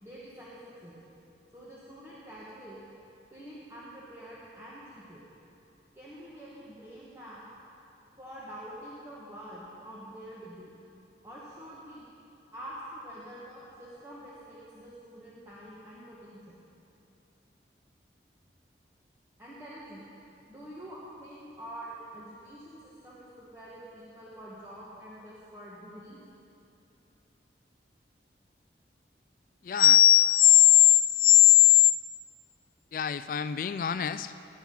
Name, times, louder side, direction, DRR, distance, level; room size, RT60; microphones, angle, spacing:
voice 1, 0.0-1.0 1.5-2.8 3.3-5.2 5.9-7.5 8.2-10.7 11.2-12.1 12.5-16.6 19.4-20.0 20.5-26.2, right 1 dB, 15° right, -8 dB, 1.7 m, -46 dB
voice 2, 29.6-30.6 31.2-31.6 32.9-34.3, left 13 dB, 50° left, 11 dB, 0.3 m, -20 dB
17.5 x 9.7 x 5.6 m, 2.8 s
head